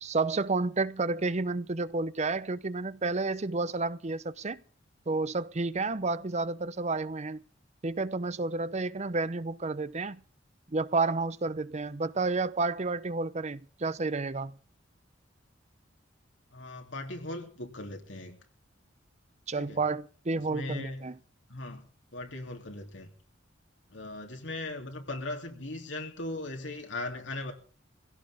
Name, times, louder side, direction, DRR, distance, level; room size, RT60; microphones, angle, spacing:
voice 1, 0.0-4.6 5.1-7.4 7.8-10.2 10.7-14.5 19.5-21.1, right 3 dB, 35° right, 0.7 m, -30 dB
voice 2, 16.5-18.4 19.5-19.8 20.3-21.1 21.5-23.1 23.9-27.5, left 2 dB, 70° left, 3.3 m, -39 dB
20.0 x 16.5 x 3.8 m
head